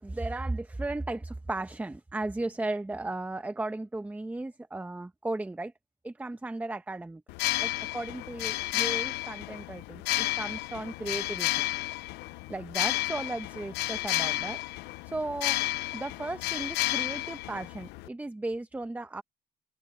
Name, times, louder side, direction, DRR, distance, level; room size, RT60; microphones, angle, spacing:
voice 1, 0.0-5.7 6.0-7.2 7.6-11.5 12.5-14.6 15.1-15.6 15.9-19.2, right 2 dB, 10° right, 1.0 m, -35 dB
sound 1, 7.3-18.1, left 18 dB, 90° left, 0.6 m, -32 dB
cardioid pair, 110°, 17 cm